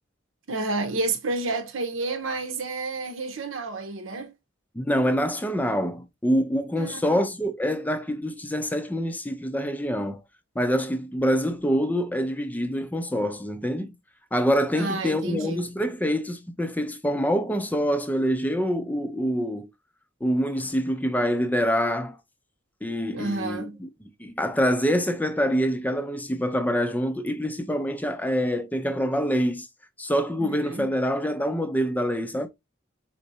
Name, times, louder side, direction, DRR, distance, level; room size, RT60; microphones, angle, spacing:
voice 1, 0.5-4.3 6.8-7.3 14.7-15.7 23.1-23.8 30.4-30.9, right 3 dB, 80° right, 0.9 m, -30 dB
voice 2, 4.7-10.2 10.6-13.9 14.3-19.7 20.2-22.2 22.8-23.9 24.2-29.7 30.0-32.5, equal, 10° left, 0.5 m, -25 dB
4.3 x 4.2 x 2.7 m
head